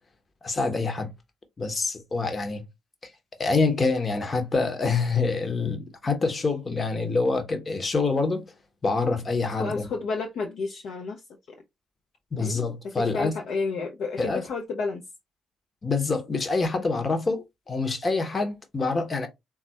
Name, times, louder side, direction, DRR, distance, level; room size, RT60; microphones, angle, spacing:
voice 1, 0.4-1.1 1.6-2.6 3.4-8.5 8.8-9.8 12.3-13.3 14.2-14.4 15.8-19.3, left 3 dB, 30° left, 0.9 m, -26 dB
voice 2, 9.6-11.2 11.5-11.6 12.4-15.0, left 4 dB, 55° left, 0.5 m, -31 dB
3.9 x 2.4 x 2.8 m
figure-of-eight pair, 45°, 0 cm